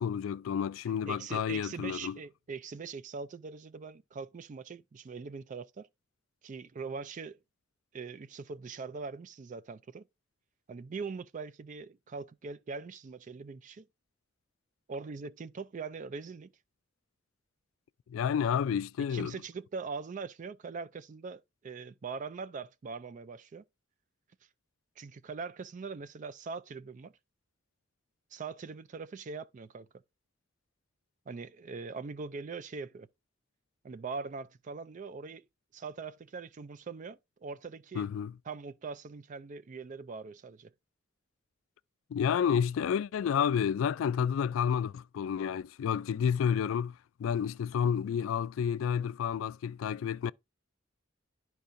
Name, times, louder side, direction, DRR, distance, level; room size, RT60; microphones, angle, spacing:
voice 1, 0.0-2.2 18.1-19.4 38.0-38.3 42.1-46.9 47.2-50.3, left 7 dB, 80° left, 0.3 m, -30 dB
voice 2, 1.1-5.9 6.4-7.4 7.9-10.0 10.7-13.9 14.9-16.5 19.1-23.6 25.0-27.1 28.3-29.9 31.3-33.1 33.8-35.4 35.7-38.1 38.5-40.7, right 4 dB, 40° right, 0.3 m, -42 dB
12.0 x 4.6 x 2.6 m
head